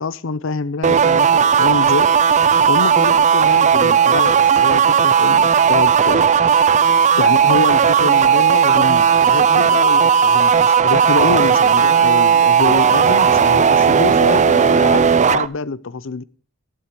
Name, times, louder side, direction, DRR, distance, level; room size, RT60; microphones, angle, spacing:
voice 1, 0.0-2.4 2.7-6.3 7.2-16.2, left 4 dB, 70° left, 0.6 m, -25 dB
sound 1, 0.8-15.5, right 7 dB, 35° right, 0.5 m, -14 dB
12.5 x 11.5 x 4.5 m
head